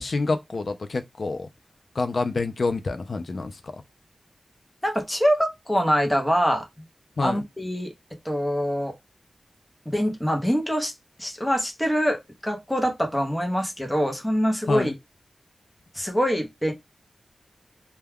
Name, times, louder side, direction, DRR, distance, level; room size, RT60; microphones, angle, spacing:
voice 1, 0.0-1.5 1.9-3.8 7.2-7.4 14.7-15.0, left 3 dB, 55° left, 0.4 m, -27 dB
voice 2, 4.8-6.6 7.2-7.9 8.2-8.9 9.9-10.9 11.2-14.9 15.9-16.7, equal, 5° left, 0.7 m, -24 dB
2.2 x 2.2 x 3.3 m
wide cardioid pair, 120°, 0 cm